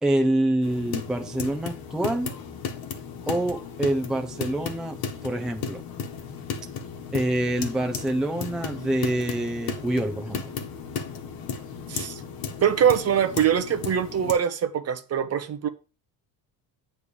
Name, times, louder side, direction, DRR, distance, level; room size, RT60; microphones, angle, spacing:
voice 1, 0.0-2.3 3.3-5.8 7.1-10.5, right 1 dB, ahead, 0.6 m, -26 dB
sound 1, 0.6-14.3, left 6 dB, 55° left, 1.3 m, -35 dB
voice 2, 11.9-12.2 12.6-15.7, right 8 dB, 35° right, 0.8 m, -23 dB
8.6 x 3.4 x 6.7 m
cardioid pair, 150°, 43 cm